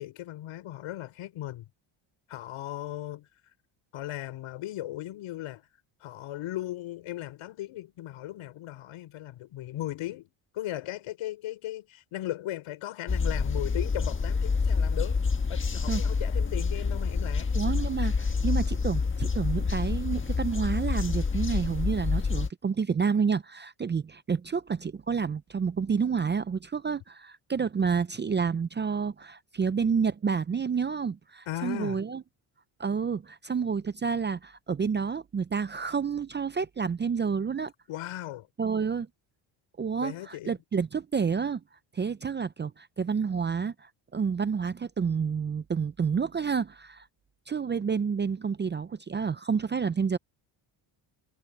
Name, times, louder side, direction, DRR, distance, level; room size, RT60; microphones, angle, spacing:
voice 1, 0.0-1.7 2.3-3.3 3.9-5.6 6.0-15.2 15.5-17.5 31.5-32.0 37.9-38.5 40.0-40.6, left 14 dB, 80° left, 5.6 m, -37 dB
sound 1, 13.1-22.5, left 4 dB, 25° left, 1.5 m, -27 dB
voice 2, 17.5-32.2 32.8-37.7 38.6-39.1 39.8-41.6 41.9-47.1 47.5-50.2, right 6 dB, 25° right, 0.5 m, -29 dB
cardioid pair, 110°, 50 cm